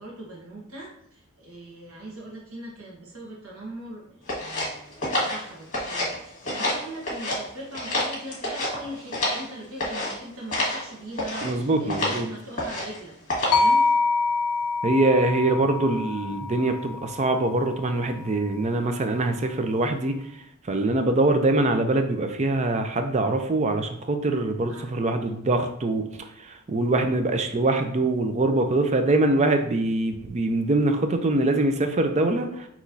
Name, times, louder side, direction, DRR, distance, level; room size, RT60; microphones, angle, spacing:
voice 1, 0.0-13.9 24.7-25.1, right 1 dB, 80° right, -3 dB, 1.2 m, -41 dB
sound 1, 4.3-6.2 6.4-7.4 7.7-9.5 9.8-10.1 10.5-10.8 11.2-11.5 11.9-12.2 12.6-13.0 13.3-13.7, left 1 dB, 35° left, 1.6 m, -28 dB
voice 2, 11.4-12.3 14.8-20.2 20.7-26.0 26.7-32.7, right 2 dB, 30° right, 7 dB, 0.4 m, -23 dB
sound 2, 13.5-17.7, left 3 dB, 90° left, 0.5 m, -25 dB
5.9 x 3.0 x 2.7 m, 0.77 s
head